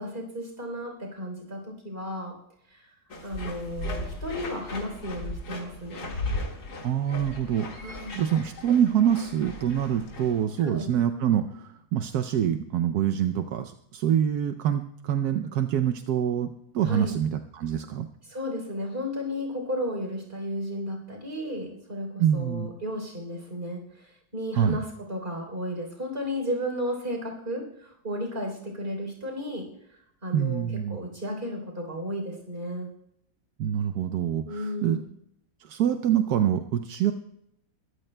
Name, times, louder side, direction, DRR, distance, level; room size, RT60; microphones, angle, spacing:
voice 1, 0.0-2.3 2.7-2.9 3.2-6.2 7.8-8.1 10.6-10.9 16.8-17.2 18.2-32.9 34.4-35.1, equal, 35° right, 2 dB, 3.7 m, -34 dB
sound 1, 3.1-10.4, left 2 dB, 90° left, 2.4 m, -37 dB
voice 2, 6.8-16.5 16.7-18.1 22.2-22.7 24.6-24.8 30.3-31.0 33.6-35.0 35.6-37.1, right 9 dB, 80° right, 8 dB, 1.2 m, -25 dB
22.0 x 14.5 x 2.2 m, 0.78 s
omnidirectional pair, 1.7 m